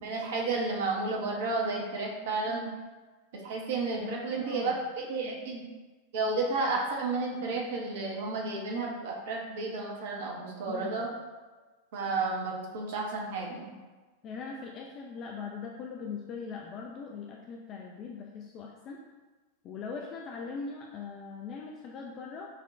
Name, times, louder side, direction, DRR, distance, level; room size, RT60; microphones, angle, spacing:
voice 1, 0.0-2.7 3.4-5.6 6.1-11.1 11.9-13.7, right 3 dB, 55° right, -1 dB, 0.6 m, -32 dB
voice 2, 4.0-4.9 10.7-11.1 14.2-19.0 19.6-22.5, left 5 dB, 35° left, -1 dB, 0.3 m, -41 dB
5.5 x 2.1 x 2.4 m, 1.3 s
figure-of-eight pair, 90°, 0 cm